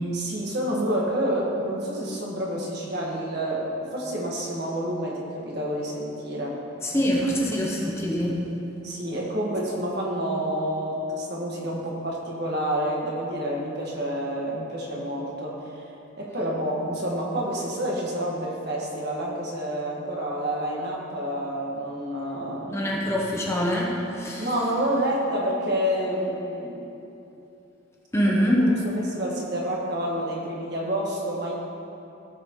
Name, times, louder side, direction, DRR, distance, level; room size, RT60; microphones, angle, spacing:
voice 1, 0.1-6.6 6.9-7.0 8.8-15.8 16.2-22.9 24.4-26.8 28.2-28.3 28.6-31.5, equal, 55° right, -3 dB, 1.7 m, -28 dB
voice 2, 6.8-8.4 22.7-24.5 28.1-28.6, equal, 15° left, -3 dB, 0.9 m, -24 dB
17.0 x 6.0 x 3.1 m, 2.9 s
head